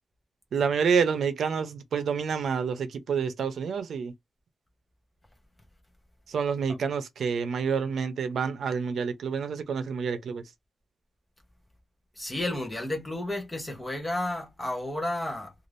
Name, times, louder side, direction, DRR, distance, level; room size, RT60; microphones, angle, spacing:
voice 1, 0.5-4.1 6.3-10.4, right 6 dB, 85° right, 0.6 m, -28 dB
voice 2, 12.1-15.5, left 1 dB, 15° left, 0.8 m, -32 dB
2.5 x 2.4 x 3.2 m
wide cardioid pair, 150°, 0 cm